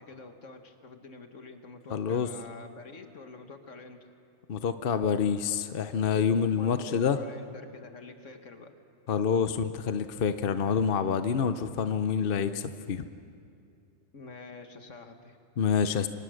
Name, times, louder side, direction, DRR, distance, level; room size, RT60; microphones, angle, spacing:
voice 1, 0.0-4.1 6.6-8.7 14.1-15.4, left 3 dB, 80° left, 6 dB, 2.0 m, -47 dB
voice 2, 1.9-2.3 4.5-7.2 9.1-13.0 15.6-16.1, left 7 dB, 50° left, 10 dB, 0.9 m, -27 dB
27.0 x 24.5 x 6.5 m, 2.5 s
omnidirectional pair, 1.3 m